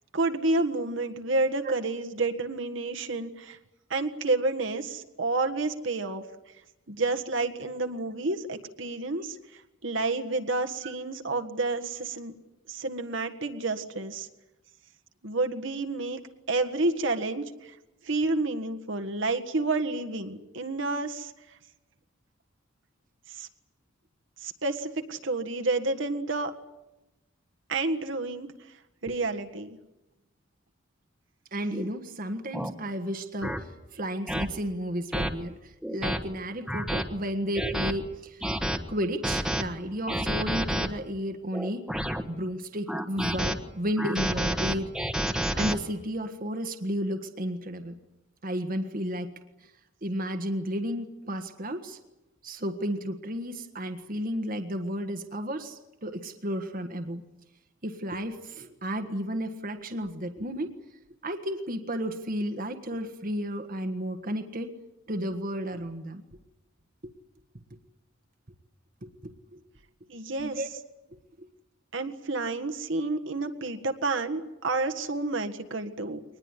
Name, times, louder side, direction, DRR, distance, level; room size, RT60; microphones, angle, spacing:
voice 1, 0.1-3.6 3.9-6.2 6.9-12.3 12.7-14.3 15.2-16.2 16.5-17.8 18.0-21.3 23.3-23.5 24.4-26.5 27.7-28.5 29.0-29.8 70.1-70.6 71.9-76.2, right 3 dB, 65° right, 5 dB, 1.7 m, -30 dB
voice 2, 31.5-38.5 38.9-41.9 42.3-44.9 45.5-48.0 48.4-49.3 49.6-49.7 50.0-52.0 52.4-57.2 57.8-60.7 61.2-64.7 65.1-66.2 67.0-67.1 69.0-69.6 70.4-70.7 71.4-71.5, equal, 45° right, 7 dB, 1.5 m, -33 dB
sound 1, 31.7-31.9 32.5-32.7 33.4-33.6 34.3-34.5 35.1-35.3 35.8-36.2 36.7-37.0 37.5-37.9 38.4-38.8 39.2-39.6 40.1-40.9 41.5-42.2 42.9-43.6 44.0-45.8, equal, 5° right, 1.4 m, -29 dB
23.5 x 20.0 x 9.8 m, 0.97 s
head